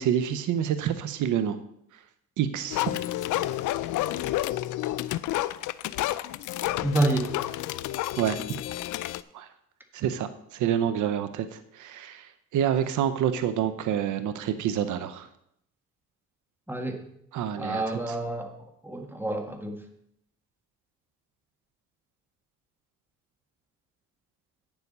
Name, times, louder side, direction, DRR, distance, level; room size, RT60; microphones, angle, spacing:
voice 1, 0.0-1.6 2.4-2.9 8.2-8.4 9.3-9.5 9.9-15.3 17.3-18.1, right 9 dB, 75° right, 11 dB, 0.7 m, -28 dB
sound 1, 2.7-9.2, left 15 dB, 80° left, 0.5 m, -30 dB
voice 2, 6.8-7.3 16.7-17.0 17.6-18.5 18.8-19.8, right 2 dB, 5° right, 4 dB, 1.7 m, -28 dB
9.4 x 7.0 x 5.4 m, 0.75 s
cardioid pair, 90°, 30 cm